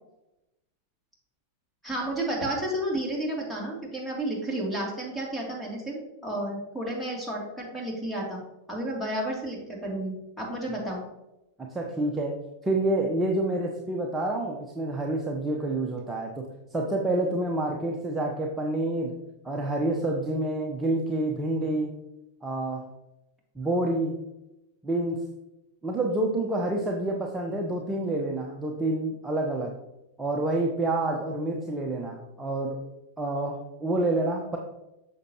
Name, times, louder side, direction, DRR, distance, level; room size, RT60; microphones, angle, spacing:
voice 1, 1.8-8.4 8.7-11.0, right 1 dB, 5° left, -3 dB, 2.8 m, -31 dB
voice 2, 11.6-19.2 19.4-22.0 22.4-22.9 23.6-24.3 24.8-25.3 25.8-29.7 30.2-32.8 33.2-34.6, right 2 dB, 15° right, 0 dB, 1.0 m, -28 dB
8.0 x 6.5 x 2.9 m, 0.92 s
hypercardioid pair, 100°, 0 cm